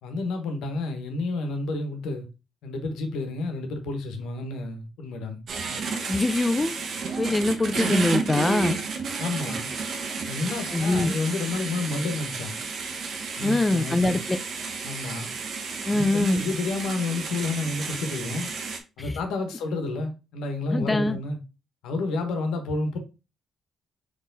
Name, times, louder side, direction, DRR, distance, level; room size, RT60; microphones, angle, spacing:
voice 1, 0.0-2.3 2.6-5.4 9.2-9.7 10.2-12.6 13.4-14.2 14.8-15.3 15.9-18.5 19.0-21.4 21.8-23.0, left 3 dB, 90° left, 1.1 m, -30 dB
sound 1, 5.5-18.8, right 4 dB, 60° right, 0.9 m, -32 dB
voice 2, 6.1-6.7 7.2-8.8 10.7-11.1 13.4-14.4 15.9-16.4 19.0-19.2 20.7-21.2, left 2 dB, 20° left, 0.4 m, -23 dB
4.3 x 3.2 x 3.9 m
cardioid pair, 90°, 0 cm